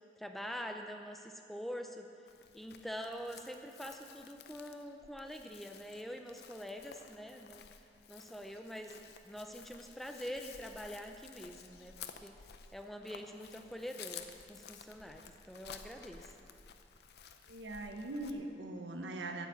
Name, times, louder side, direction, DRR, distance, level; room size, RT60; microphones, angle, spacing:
voice 1, 0.2-2.1 2.5-7.6 8.1-9.0 9.2-11.9 12.2-12.3 12.7-16.3, equal, ahead, 4 dB, 0.4 m, -45 dB
Chirp tweet, 2.3-18.3, left 7 dB, 60° left, 0.6 m, -54 dB
voice 2, 17.5-19.5, right 2 dB, 85° right, 4 dB, 1.0 m, -41 dB
9.1 x 7.2 x 8.1 m, 2.6 s
head